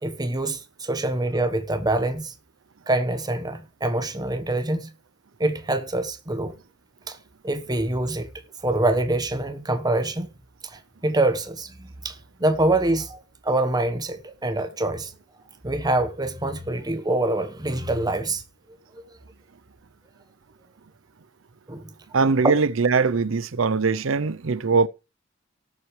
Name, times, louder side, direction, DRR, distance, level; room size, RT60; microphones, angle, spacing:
voice 1, 0.0-2.3 2.9-4.9 5.4-6.5 7.1-7.2 7.4-8.3 8.6-10.3 10.6-15.1 15.6-18.4 19.0-19.1 21.7-21.9 22.2-22.5, right 2 dB, 20° right, 1.2 m, -25 dB
voice 2, 22.1-24.9, right 4 dB, 85° right, 0.6 m, -21 dB
18.0 x 7.6 x 3.3 m
head